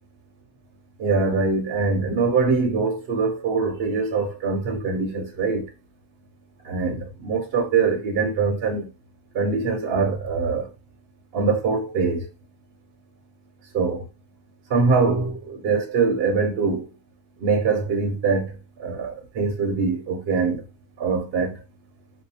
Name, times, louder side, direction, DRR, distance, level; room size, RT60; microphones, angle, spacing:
voice 1, 1.0-5.7 6.6-8.9 9.3-10.7 11.3-12.3 13.7-14.1 14.7-16.9 17.4-20.6 21.0-21.6, right 4 dB, 55° right, 0.7 m, -23 dB
2.6 x 2.1 x 2.7 m
omnidirectional pair, 1.6 m